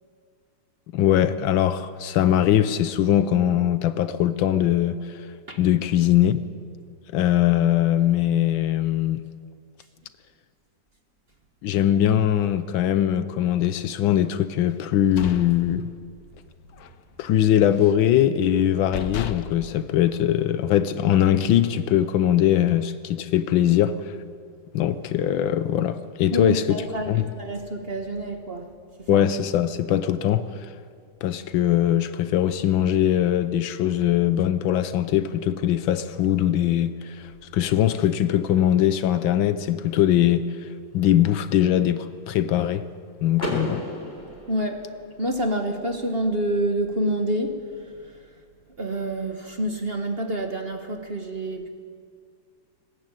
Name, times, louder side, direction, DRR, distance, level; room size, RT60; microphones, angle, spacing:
voice 1, 0.9-5.3 5.6-6.4 7.1-9.2 11.6-15.9 17.2-24.2 24.7-27.2 29.1-30.7 31.2-40.7 40.9-42.9 43.2-43.8, left 11 dB, 85° left, 1.5 m, -21 dB
sound 1, 14.8-16.4 16.7-17.0 17.3-18.1 18.6-18.7 18.9-20.8, left 8 dB, 60° left, 1.1 m, -36 dB
voice 2, 26.3-28.7 29.0-29.3 44.5-44.9 45.2-48.2 48.8-51.7, right 1 dB, 35° right, 1.6 m, -28 dB
Car / Door, 43.4-45.3, left 1 dB, 30° left, 4.0 m, -33 dB
20.0 x 16.5 x 9.0 m
omnidirectional pair, 2.1 m